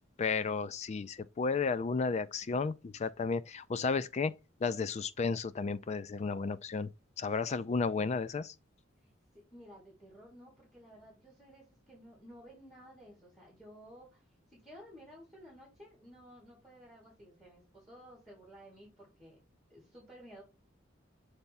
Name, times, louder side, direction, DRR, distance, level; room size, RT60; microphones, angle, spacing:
voice 1, 0.2-4.3 4.6-6.9 7.2-8.5, left 4 dB, 35° left, 0.4 m, -33 dB
voice 2, 9.5-19.4 19.7-20.4, equal, ahead, 3.2 m, -54 dB
8.1 x 3.4 x 4.1 m
head